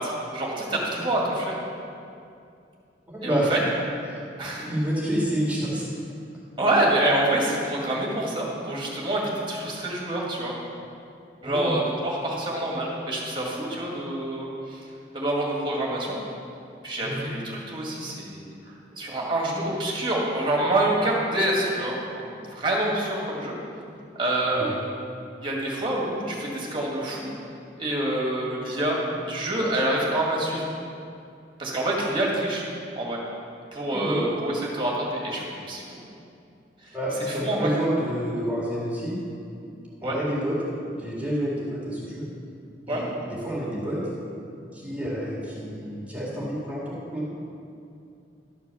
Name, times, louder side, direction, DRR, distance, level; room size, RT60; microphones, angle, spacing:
voice 1, 0.0-1.5 3.2-3.6 4.4-4.7 6.6-10.6 11.4-14.9 15.1-16.2 16.8-23.6 24.2-24.9 25.4-27.3 27.8-29.0 29.3-30.7 31.6-32.6 33.0-33.2 33.7-36.0 36.8-37.7 40.0-40.2 42.9-43.0, right 1 dB, 30° right, -3 dB, 2.0 m, -27 dB
voice 2, 3.1-3.5 4.1-5.8 11.4-11.7 17.0-17.3 24.6-24.7 33.9-34.2 36.9-39.1 40.0-40.6 41.0-42.2 42.9-44.0 44.7-47.3, equal, 10° right, -7 dB, 2.1 m, -29 dB
12.0 x 4.5 x 6.9 m, 2.5 s
head